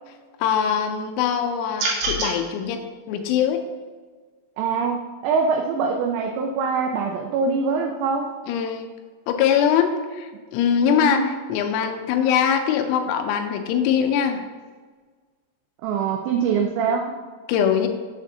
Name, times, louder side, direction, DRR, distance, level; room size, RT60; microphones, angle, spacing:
voice 1, 0.4-2.8 3.1-3.6 8.5-8.9 9.3-14.4 17.5-17.9, left 8 dB, 85° left, 6 dB, 3.0 m, -22 dB
sound 1, 1.8-2.3, right 2 dB, 65° right, 3.0 m, -24 dB
voice 2, 4.6-8.3 10.9-11.3 15.8-17.1, right 5 dB, 85° right, 2 dB, 2.5 m, -23 dB
7.3 x 7.2 x 2.7 m, 1.5 s
omnidirectional pair, 5.6 m